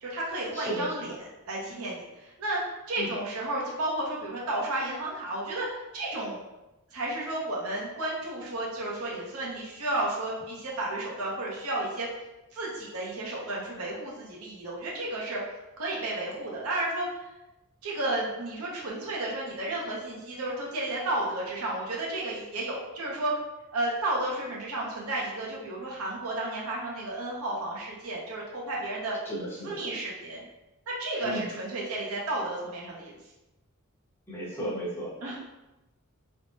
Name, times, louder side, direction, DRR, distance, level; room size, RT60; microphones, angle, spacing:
voice 1, 0.0-2.6 2.9-6.4 6.9-12.1 12.5-15.4 15.8-17.1 17.8-23.3 23.7-29.2 29.6-30.4 30.9-33.1 35.2-35.4, right 2 dB, 80° right, -4 dB, 0.7 m, -32 dB
voice 2, 0.5-0.9 3.0-3.1 29.3-29.8 31.2-31.4 34.3-35.1, right 1 dB, 10° left, -8 dB, 0.8 m, -34 dB
3.4 x 2.0 x 2.6 m, 0.99 s
head